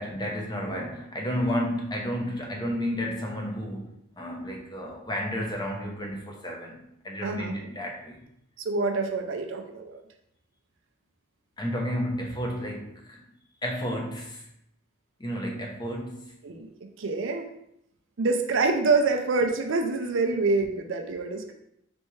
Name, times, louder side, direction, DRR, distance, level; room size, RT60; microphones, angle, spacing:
voice 1, 0.0-8.2 11.6-13.2 13.6-14.5 15.2-16.3, equal, 20° left, 0 dB, 0.7 m, -32 dB
voice 2, 7.2-7.6 8.6-10.0 16.4-16.7 17.0-17.5 18.2-21.5, right 3 dB, 65° right, 4 dB, 0.5 m, -26 dB
4.3 x 3.4 x 3.1 m, 0.77 s
head